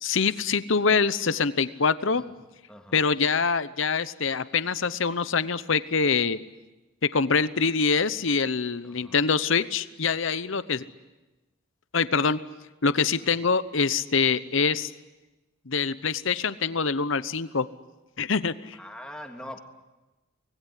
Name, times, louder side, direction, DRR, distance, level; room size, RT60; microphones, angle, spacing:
voice 1, 0.0-2.2 2.9-6.4 7.0-10.8 11.9-12.4 12.8-14.9 15.7-17.7 18.2-18.8, left 5 dB, 60° left, 14 dB, 0.9 m, -24 dB
voice 2, 2.7-3.0 8.8-9.2 13.2-13.5 18.7-19.6, left 1 dB, 5° left, 3 dB, 2.2 m, -43 dB
25.0 x 19.5 x 10.0 m, 1.1 s
head